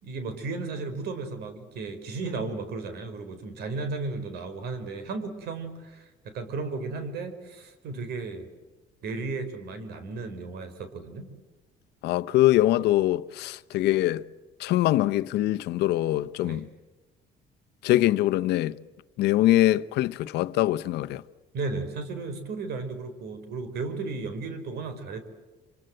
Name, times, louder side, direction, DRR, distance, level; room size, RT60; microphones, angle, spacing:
voice 1, 0.0-8.5 9.0-11.3 16.4-16.6 21.5-25.3, right 3 dB, 70° right, 4.8 m, -34 dB
voice 2, 12.0-14.2 14.6-16.7 17.8-18.8 19.2-21.2, left 15 dB, 80° left, 0.9 m, -23 dB
27.0 x 26.5 x 7.9 m
cardioid pair, 110°, 17 cm